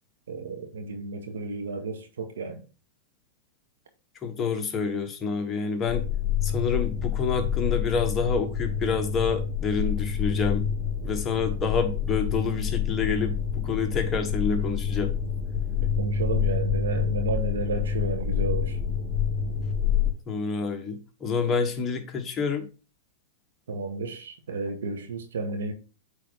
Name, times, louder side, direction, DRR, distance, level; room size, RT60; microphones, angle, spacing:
voice 1, 0.3-2.6 16.0-18.8 23.7-25.7, right 3 dB, 80° right, 1.7 m, -32 dB
voice 2, 4.2-6.1 6.4-10.7 11.0-13.4 13.6-15.1 20.3-22.7, left 5 dB, 25° left, 1.3 m, -28 dB
sound 1, 5.9-20.1, left 7 dB, 5° right, 3.5 m, -27 dB
8.4 x 4.0 x 3.9 m
hypercardioid pair, 120°, 0 cm